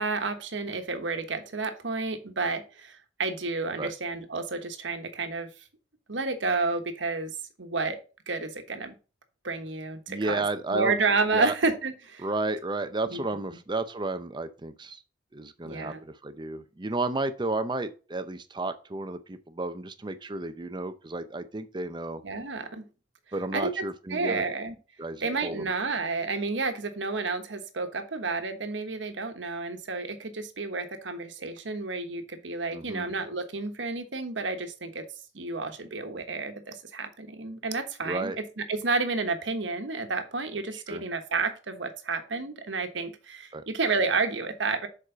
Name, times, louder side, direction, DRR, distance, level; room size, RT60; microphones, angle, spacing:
voice 1, 0.0-5.5 6.1-8.0 8.3-8.9 9.4-10.4 10.7-12.3 13.1-13.2 15.6-16.0 22.2-22.8 23.5-23.7 24.1-24.7 25.2-35.0 35.3-44.9, right 3 dB, 80° right, 1.2 m, -30 dB
voice 2, 10.1-10.9 11.3-11.5 12.2-15.0 15.3-22.2 23.3-24.5 25.0-25.7 32.7-33.1 38.0-38.4 40.7-41.0 43.5-43.6, right 2 dB, 25° right, 0.7 m, -32 dB
7.1 x 4.8 x 4.9 m
head